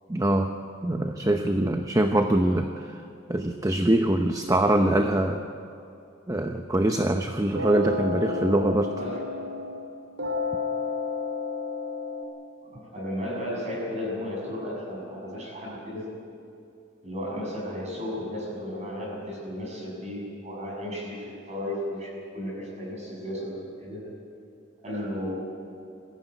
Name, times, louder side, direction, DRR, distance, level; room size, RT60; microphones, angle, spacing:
voice 1, 0.1-0.5 0.8-3.0 3.3-5.4 6.3-8.9, right 1 dB, 20° right, 5 dB, 0.8 m, -23 dB
sound 1, 7.6-9.9 10.2-12.2, left 3 dB, 85° right, 2.9 m, -31 dB
voice 2, 12.6-16.1 17.0-24.1 24.8-25.3, left 1 dB, 35° right, -2 dB, 6.9 m, -34 dB
21.0 x 15.5 x 9.1 m, 2.7 s
head